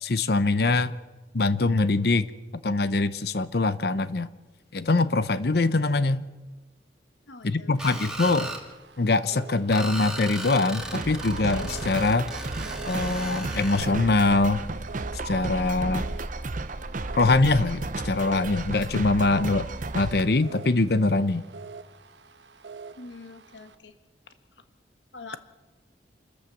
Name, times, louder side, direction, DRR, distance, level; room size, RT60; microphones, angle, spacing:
voice 1, 0.0-0.9 1.3-2.3 2.6-4.3 4.7-6.2 7.4-8.5 9.0-12.3 12.8-14.7 15.2-16.1 17.2-19.7 19.9-21.4, left 3 dB, 60° left, 14 dB, 0.7 m, -23 dB
voice 2, 7.3-8.0 23.0-24.0 24.3-24.4 25.1-25.4, left 3 dB, 85° left, 8 dB, 1.4 m, -45 dB
Screech, 7.8-8.6 9.7-13.8, right 1 dB, 5° right, 2.5 m, -36 dB
sound 1, 7.8-23.8, right 4 dB, 80° right, 1.2 m, -46 dB
sound 2, 10.8-20.2, right 2 dB, 45° right, 0.8 m, -33 dB
28.5 x 14.0 x 7.2 m, 1.2 s
head